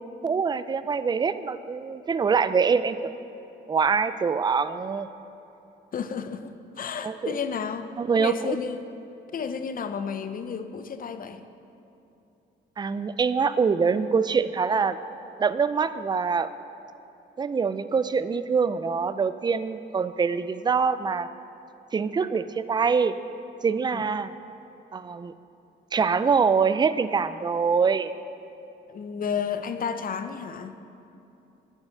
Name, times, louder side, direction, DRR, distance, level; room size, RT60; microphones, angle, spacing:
voice 1, 0.2-3.1 3.7-5.1 7.0-7.4 8.0-8.6 12.8-15.0 15.4-16.5 17.4-21.3 21.9-23.1 23.6-24.3 24.9-25.3 25.9-28.1, right 5 dB, 20° right, 13 dB, 0.4 m, -24 dB
voice 2, 5.9-8.8 9.3-11.4 23.9-24.0 28.9-30.8, left 6 dB, 45° left, 10 dB, 0.6 m, -32 dB
8.9 x 7.5 x 6.3 m, 2.8 s
cardioid pair, 90°, 20 cm